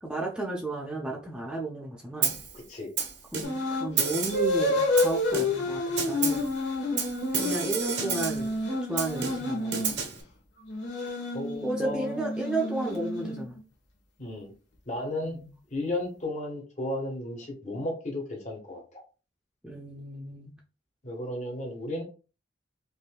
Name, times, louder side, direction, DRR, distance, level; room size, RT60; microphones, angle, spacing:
voice 1, 0.0-2.3 3.3-6.4 7.3-8.5 8.9-9.9 11.6-13.6 15.2-15.5 19.6-20.5, right 2 dB, 5° right, -2 dB, 0.6 m, -33 dB
Snare drum, 2.2-2.5 3.0-3.7 4.0-4.5 5.0-5.7 6.0-6.5 7.0-8.5 9.0-10.2, right 6 dB, 65° right, 1.0 m, -31 dB
voice 2, 2.5-2.9 11.3-12.2 14.2-14.5 14.9-15.4 15.7-18.8 21.0-22.0, left 1 dB, 40° left, 1 dB, 1.2 m, -34 dB
sound 1, 3.4-3.9 4.3-9.9 10.7-13.6, left 2 dB, 75° left, 1.3 m, -29 dB
5.3 x 2.7 x 2.2 m, 0.33 s
head